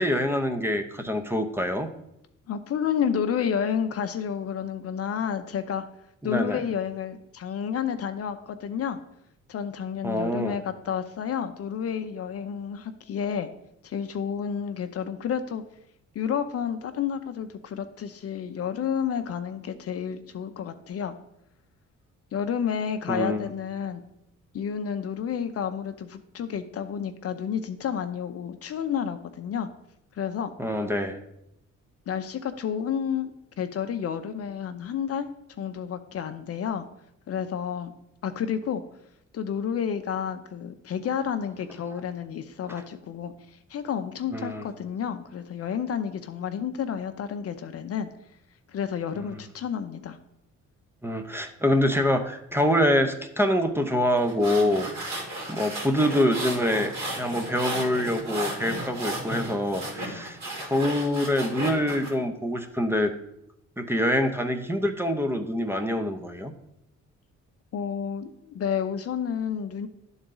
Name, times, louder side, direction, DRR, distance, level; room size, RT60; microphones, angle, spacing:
voice 1, 0.0-1.9 6.2-6.6 10.0-10.6 23.1-23.5 30.6-31.2 44.3-44.6 49.3-49.4 51.0-54.9 55.5-63.1 63.8-66.5, left 1 dB, 10° right, 6 dB, 0.7 m, -25 dB
voice 2, 2.5-5.8 6.2-9.0 9.5-13.5 13.8-15.6 16.1-21.1 22.3-24.0 24.5-29.7 30.1-30.5 32.1-35.3 35.6-36.8 37.3-37.9 38.2-38.8 39.3-48.1 48.7-50.2 67.7-69.9, left 8 dB, 50° left, 8 dB, 0.6 m, -30 dB
sound 1, 54.2-62.1, right 1 dB, 65° right, 2.5 m, -34 dB
11.0 x 4.0 x 3.8 m, 0.82 s
cardioid pair, 90°, 30 cm